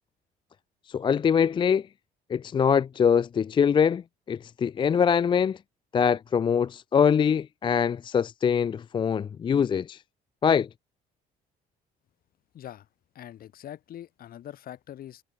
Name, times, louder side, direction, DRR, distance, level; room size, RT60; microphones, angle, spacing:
voice 1, 0.9-1.8 2.3-4.0 4.3-5.6 5.9-10.0 10.4-10.7, left 7 dB, 30° left, 0.4 m, -23 dB
voice 2, 12.5-12.9 13.1-15.2, left 11 dB, 60° left, 4.8 m, -43 dB
cardioid pair, 110°, 17 cm